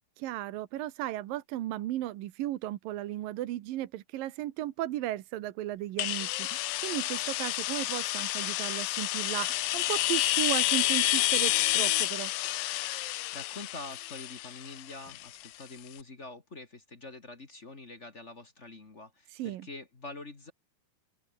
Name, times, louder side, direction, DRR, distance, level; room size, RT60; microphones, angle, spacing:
voice 1, 0.2-12.3 19.3-19.7, right 14 dB, 80° right, 2.9 m, -35 dB
sound 1, 6.0-15.6, left 17 dB, 90° left, 2.6 m, -29 dB
voice 2, 13.3-20.5, left 2 dB, 25° left, 1.8 m, -45 dB
omnidirectional pair, 4.0 m